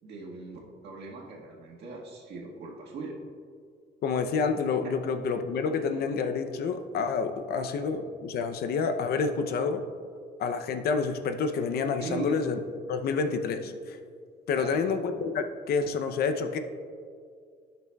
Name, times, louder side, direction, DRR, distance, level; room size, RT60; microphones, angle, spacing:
voice 1, 0.0-3.2 12.0-12.3 14.6-14.8, right 3 dB, 70° right, -3 dB, 1.6 m, -39 dB
voice 2, 4.0-9.8 10.4-12.6 12.9-14.0 14.5-16.6, left 5 dB, 60° left, 8 dB, 0.6 m, -28 dB
13.5 x 6.0 x 2.3 m, 2.2 s
cardioid pair, 165°, 18 cm